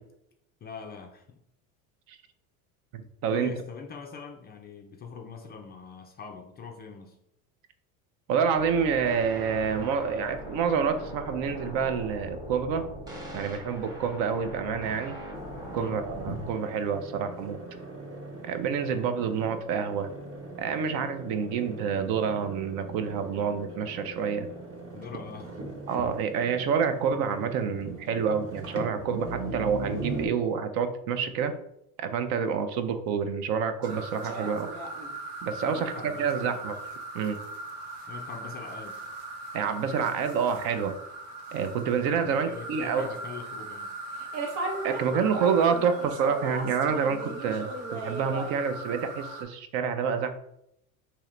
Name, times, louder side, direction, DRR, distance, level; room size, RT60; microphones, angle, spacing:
voice 1, 0.6-1.4 3.3-7.2 15.8-16.1 24.9-25.5 35.7-36.6 38.1-39.0 42.1-43.9, left 5 dB, 25° left, 3 dB, 0.3 m, -42 dB
voice 2, 2.9-3.5 8.3-12.9 13.3-15.2 15.7-17.6 18.4-20.1 20.6-24.5 25.9-31.5 32.0-34.7 35.4-35.9 36.2-36.8 37.1-37.4 39.5-41.0 41.5-43.1 44.8-50.3, right 6 dB, 50° right, 9 dB, 0.6 m, -28 dB
sound 1, 8.6-16.6, equal, 10° right, 1.1 m, -40 dB
sound 2, 15.3-30.3, right 2 dB, 35° right, 1.1 m, -40 dB
sound 3, 33.8-49.4, right 2 dB, 75° right, 1.1 m, -38 dB
3.6 x 2.9 x 3.2 m, 0.78 s
hypercardioid pair, 90°, 44 cm